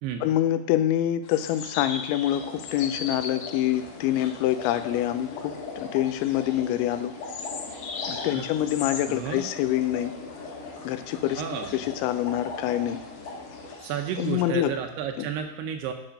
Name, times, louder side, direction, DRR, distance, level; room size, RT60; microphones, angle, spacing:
voice 1, 0.2-7.1 8.0-10.1 10.9-11.4 11.7-13.0 14.2-14.7 15.2-15.3, left 12 dB, 90° left, 11 dB, 3.0 m, -26 dB
sound 1, 1.2-14.4, left 5 dB, 70° left, 2.7 m, -41 dB
sound 2, 2.2-13.7, left 3 dB, 55° left, 1.8 m, -40 dB
voice 2, 8.3-8.7 9.1-9.4 11.4-11.8 13.8-15.9, right 8 dB, 80° right, 5 dB, 2.5 m, -32 dB
9.8 x 6.0 x 5.1 m, 0.83 s
omnidirectional pair, 5.1 m